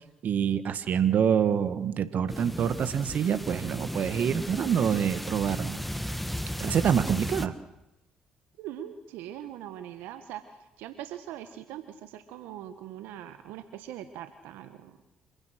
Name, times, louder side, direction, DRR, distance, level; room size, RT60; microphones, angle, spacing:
voice 1, 0.2-5.8 6.6-7.5, right 8 dB, 60° right, 12 dB, 1.4 m, -26 dB
sound 1, 2.3-7.5, equal, 5° left, 1.4 m, -35 dB
voice 2, 8.6-10.4 10.8-14.9, right 11 dB, 75° right, 10 dB, 1.3 m, -41 dB
26.5 x 16.0 x 6.5 m, 0.90 s
hypercardioid pair, 50°, 3 cm